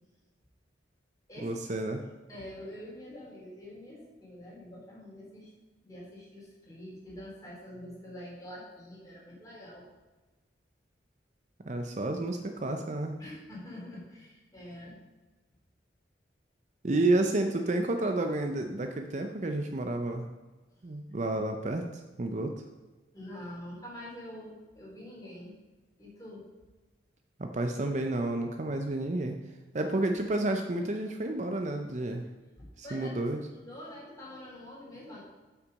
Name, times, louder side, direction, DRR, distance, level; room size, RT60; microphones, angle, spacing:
voice 1, 1.4-2.0 11.6-13.2 16.8-20.3 20.8-21.8 22.2-22.5 27.4-29.4 29.7-32.2 32.8-33.4, right 2 dB, 40° right, 5 dB, 0.6 m, -30 dB
voice 2, 2.3-5.5 5.8-9.8 13.2-14.9 23.1-25.6 26.0-26.4 32.6-33.1 33.5-35.2, left 1 dB, 20° left, -5 dB, 3.3 m, -45 dB
8.1 x 5.9 x 5.3 m, 1.2 s
head